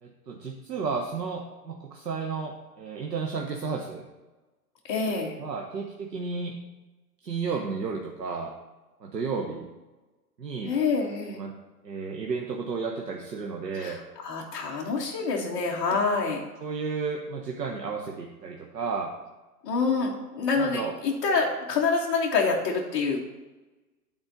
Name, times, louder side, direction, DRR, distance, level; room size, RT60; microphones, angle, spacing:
voice 1, 0.0-4.1 5.4-6.6 7.2-8.5 9.0-9.7 10.4-10.7 11.3-11.5 11.8-14.0 16.6-19.1 20.6-20.9, right 5 dB, 80° right, 2 dB, 1.1 m, -32 dB
voice 2, 4.9-5.4 10.6-11.4 13.7-16.4 19.6-23.2, left 4 dB, 15° left, -5 dB, 0.5 m, -27 dB
8.8 x 4.4 x 5.1 m, 1.2 s
hypercardioid pair, 125°, 48 cm